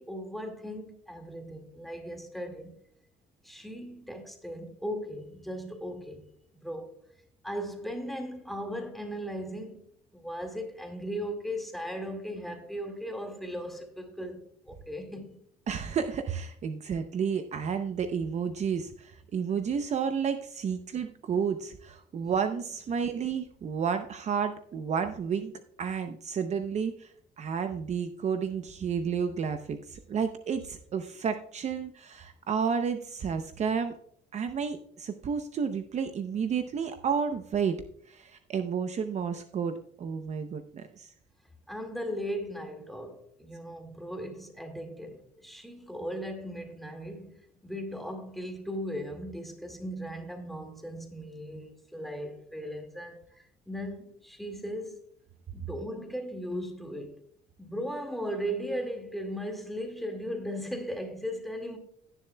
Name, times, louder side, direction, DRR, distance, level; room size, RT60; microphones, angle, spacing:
voice 1, 0.0-2.7 3.4-6.3 6.6-6.9 7.4-9.8 10.1-15.4 41.7-55.1 55.5-57.2 57.6-61.8, equal, ahead, 2.0 m, -37 dB
voice 2, 15.7-25.5 25.8-34.0 34.3-37.8 38.1-41.1, right 6 dB, 45° right, 0.7 m, -31 dB
17.0 x 7.2 x 2.2 m
cardioid pair, 110°, 17 cm